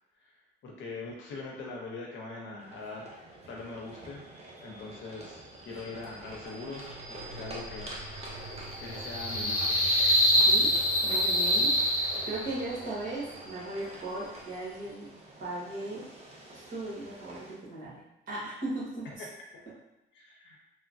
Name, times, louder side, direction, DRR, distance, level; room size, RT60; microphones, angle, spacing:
voice 1, 0.6-3.1 3.5-4.3 4.6-9.8 19.0-19.1 20.1-20.6, left 3 dB, 75° left, -1 dB, 0.7 m, -42 dB
sound 1, 2.6-17.6, right 1 dB, 30° right, 0.7 m, -47 dB
sound 2, 6.7-12.7, equal, 10° right, 1.1 m, -27 dB
voice 2, 11.0-15.1 15.4-16.0 16.5-18.0 18.3-19.1, right 2 dB, 45° right, -7 dB, 1.4 m, -37 dB
3.1 x 2.1 x 2.6 m, 0.94 s
cardioid pair, 90°, 20 cm